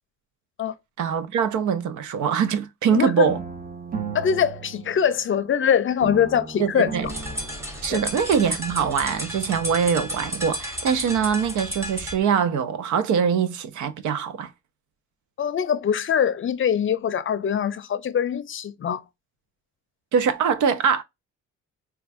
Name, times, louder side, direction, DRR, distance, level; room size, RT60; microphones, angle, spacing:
voice 1, 1.0-3.4 6.6-7.1 7.8-14.5 20.1-21.0, right 7 dB, 75° right, 0.6 m, -23 dB
voice 2, 2.9-3.3 4.1-7.1 7.9-8.0 15.4-19.0, left 8 dB, 45° left, 0.5 m, -23 dB
sound 1, 3.3-5.6 6.0-8.3, right 5 dB, 30° right, 0.7 m, -36 dB
sound 2, 7.0-12.2, equal, 10° right, 1.0 m, -32 dB
4.4 x 2.4 x 2.5 m
cardioid pair, 90°, 30 cm